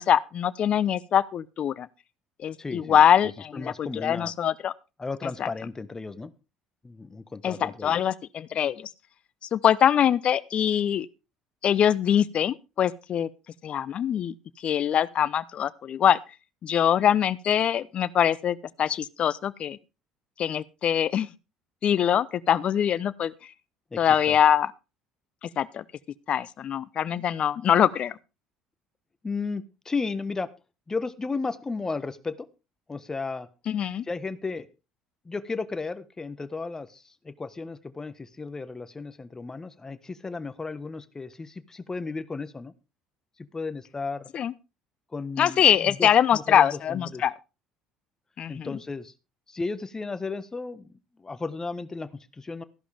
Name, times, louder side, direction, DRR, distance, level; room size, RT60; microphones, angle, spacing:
voice 1, 0.0-1.9 2.4-4.7 5.4-5.5 7.4-8.9 9.5-11.1 11.6-13.3 13.6-14.3 14.6-16.2 16.6-19.8 20.4-21.3 21.8-23.3 24.0-24.7 25.4-25.8 26.3-28.2 33.7-34.0 44.3-44.5 45.4-47.3 48.4-48.8, left 9 dB, 50° left, 0.8 m, -23 dB
voice 2, 2.6-4.3 5.0-6.3 6.8-8.0 23.9-24.4 29.2-30.5 30.9-32.5 32.9-33.5 34.0-34.7 35.2-42.7 43.4-44.3 45.1-47.3 48.5-49.1 49.5-50.9 51.2-52.6, left 4 dB, 20° left, 1.3 m, -34 dB
15.0 x 11.0 x 3.5 m
hypercardioid pair, 60°, 2 cm